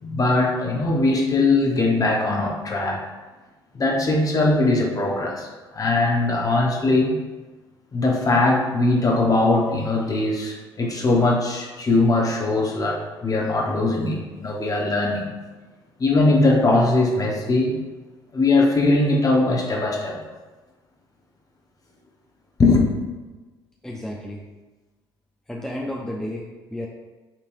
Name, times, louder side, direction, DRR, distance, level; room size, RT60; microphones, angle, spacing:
voice 1, 0.0-3.0 3.7-7.1 7.9-15.3 16.0-17.8 18.3-20.2 22.6-22.9, left 2 dB, 30° left, 0 dB, 1.0 m, -20 dB
voice 2, 23.8-24.4 25.5-26.9, left 1 dB, 5° left, -2 dB, 0.5 m, -32 dB
5.8 x 3.2 x 2.6 m, 1.2 s
figure-of-eight pair, 55°, 13 cm